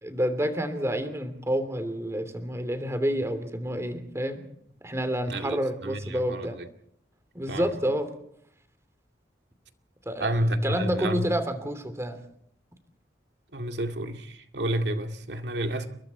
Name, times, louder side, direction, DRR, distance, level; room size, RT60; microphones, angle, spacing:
voice 1, 0.0-4.4 4.8-6.6 7.3-8.1 10.0-12.2, equal, 15° right, 2.9 m, -29 dB
voice 2, 5.3-6.5 7.5-7.6 10.2-11.3 13.5-14.3 14.5-15.9, right 1 dB, 75° right, 2.1 m, -29 dB
29.0 x 22.5 x 4.3 m
head